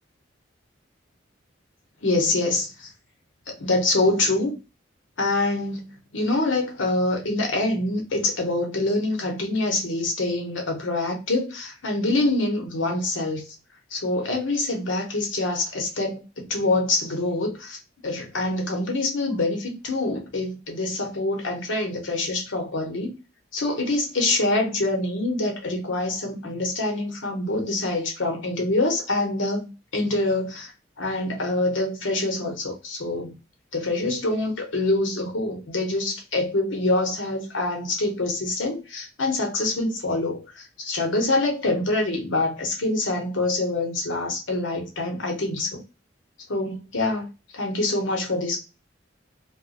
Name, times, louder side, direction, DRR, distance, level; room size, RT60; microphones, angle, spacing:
voice 1, 2.0-2.9 3.5-4.5 5.2-13.5 13.9-17.8 18.0-23.1 23.5-30.7 31.0-33.3 33.7-45.8 46.5-47.3 47.5-48.6, left 2 dB, 90° left, 0.9 m, -25 dB
2.4 x 2.1 x 3.8 m
head